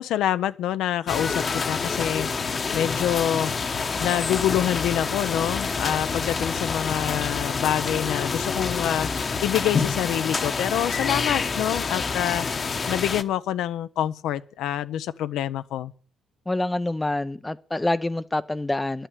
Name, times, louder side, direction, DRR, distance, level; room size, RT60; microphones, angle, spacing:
voice 1, 0.0-2.3 2.7-3.5 4.0-9.1 9.4-12.5 12.9-15.9, left 11 dB, 85° left, 0.6 m, -26 dB
sound 1, 1.1-13.2, left 5 dB, 40° left, 1.0 m, -27 dB
voice 2, 16.5-19.1, left 2 dB, 15° left, 0.5 m, -26 dB
10.5 x 9.1 x 8.3 m
cardioid pair, 90°, 0 cm